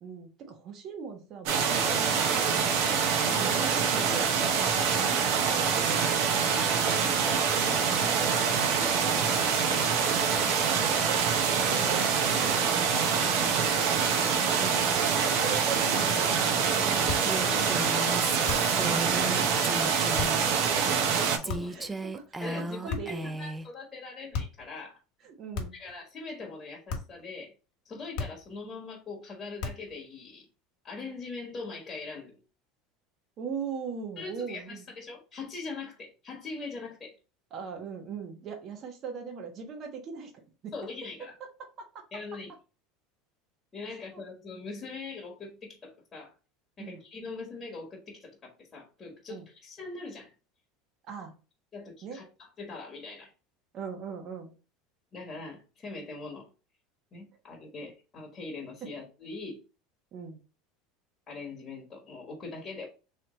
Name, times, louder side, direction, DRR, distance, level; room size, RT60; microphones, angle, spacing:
voice 1, 0.0-5.0 5.8-6.2 8.9-9.2 10.7-13.0 14.6-17.1 17.5-17.6 18.0-18.1 18.5-18.8 21.7-23.3 25.2-25.7 33.4-34.8 37.5-40.3 40.6-40.7 41.8-42.0 43.9-44.2 46.8-47.0 49.3-49.4 51.1-51.3 52.0-52.2 53.7-54.5 58.8-58.9 60.1-60.4, right 6 dB, 40° right, 3 dB, 1.1 m, -40 dB
sound 1, 1.5-21.4, right 6 dB, 65° right, 0.8 m, -25 dB
voice 2, 5.7-6.1 6.5-8.2 8.6-8.9 13.2-13.5 17.0-17.1 20.9-22.1 22.4-25.0 25.7-27.5 27.8-30.5 30.8-32.4 34.2-37.1 40.7-41.4 42.1-42.5 43.7-46.3 46.8-50.3 51.7-53.3 55.1-56.4 57.1-59.6 61.3-62.9, left 3 dB, 25° left, -2 dB, 1.3 m, -42 dB
sound 2, 17.1-17.4 18.5-18.8 20.2-20.4 21.5-21.9 22.9-23.3 24.3-24.7 25.5-25.9 26.9-27.2 28.2-28.6 29.6-30.0, left 4 dB, 60° left, 1.3 m, -36 dB
Female speech woman speaking, 17.2-20.5 21.4-23.7, right 1 dB, 10° right, 0.3 m, -36 dB
3.1 x 3.1 x 3.9 m, 0.33 s
supercardioid pair, 130°, 0 cm